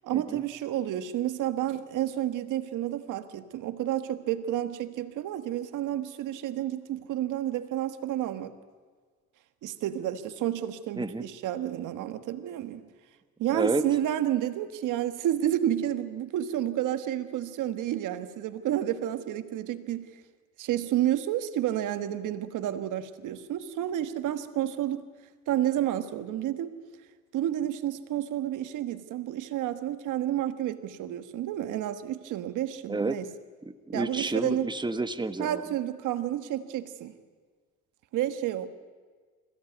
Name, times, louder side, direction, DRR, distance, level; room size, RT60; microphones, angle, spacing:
voice 1, 0.0-8.5 9.6-12.8 13.4-20.1 20.6-25.0 25.5-26.8 27.3-33.3 33.9-34.7 35.4-37.1 38.1-38.7, right 12 dB, 85° right, 10 dB, 1.4 m, -30 dB
voice 2, 13.5-13.8 32.9-33.2 33.6-35.6, right 3 dB, 15° right, 10 dB, 1.4 m, -30 dB
27.0 x 16.0 x 9.3 m, 1.5 s
cardioid pair, 90°, 30 cm